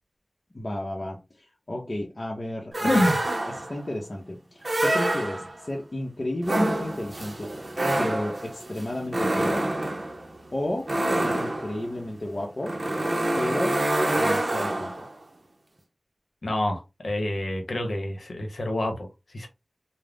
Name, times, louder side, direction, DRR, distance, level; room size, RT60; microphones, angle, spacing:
voice 1, 0.5-3.1 3.5-7.5 8.0-9.6 10.5-12.8 13.4-13.8 14.1-15.1, left 1 dB, 50° left, 0.7 m, -32 dB
sound 1, 2.7-3.8 4.6-5.7 6.4-15.1, right 1 dB, 55° right, 0.6 m, -27 dB
voice 2, 2.8-3.2 16.4-19.1 19.3-19.5, left 1 dB, 85° left, 0.8 m, -27 dB
2.4 x 2.0 x 3.4 m
wide cardioid pair, 50°, 0 cm